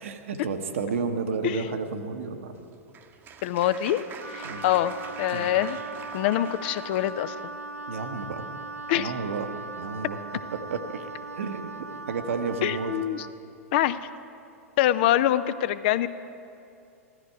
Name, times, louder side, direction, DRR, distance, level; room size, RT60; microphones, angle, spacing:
voice 1, 0.0-2.6 4.4-4.6 5.3-5.5 7.9-8.4 8.9-9.5 9.8-10.2 10.5-11.1 11.3-13.0, right 5 dB, 60° right, 6 dB, 1.1 m, -32 dB
Applause, 2.5-7.4, right 6 dB, 25° right, 0.9 m, -44 dB
voice 2, 3.4-5.8 6.1-7.5 8.9-9.1 12.6-13.3 13.7-14.0 14.8-16.1, left 12 dB, 45° left, 14 dB, 0.5 m, -25 dB
Wind instrument woodwind instrument, 4.2-13.4, right 3 dB, 85° right, 0.5 m, -39 dB
15.5 x 13.0 x 4.7 m, 2.7 s
figure-of-eight pair, 95°, 8 cm